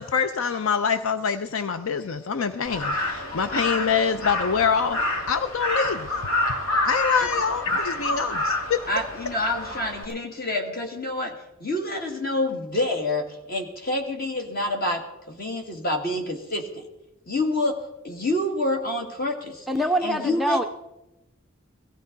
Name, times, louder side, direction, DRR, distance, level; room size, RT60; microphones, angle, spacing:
voice 1, 0.0-6.1 6.8-8.8, left 6 dB, 70° left, 11 dB, 0.5 m, -25 dB
Crow, 2.6-10.0, left 2 dB, 90° left, 2.7 m, -28 dB
voice 2, 8.9-16.8 17.3-19.7 20.0-20.7, left 1 dB, 45° left, 3 dB, 2.0 m, -27 dB
voice 3, 19.7-20.6, right 1 dB, ahead, 4 dB, 0.4 m, -24 dB
17.0 x 14.5 x 4.0 m, 0.96 s
head